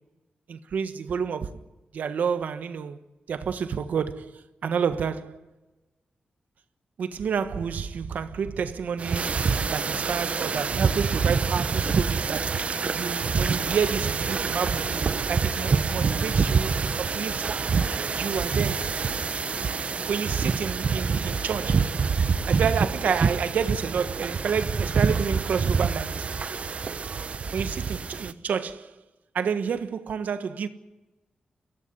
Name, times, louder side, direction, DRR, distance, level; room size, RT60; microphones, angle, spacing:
voice 1, 0.5-1.5 1.9-3.0 3.3-5.4 7.0-12.5 12.9-14.9 15.3-17.5 18.1-18.9 20.1-21.9 22.5-26.3 27.5-28.9 29.3-30.7, right 6 dB, 85° right, 1.4 m, -29 dB
sound 1, 9.0-28.3, right 5 dB, 50° right, 1.0 m, -26 dB
23.0 x 16.5 x 9.8 m
wide cardioid pair, 100°, 3 cm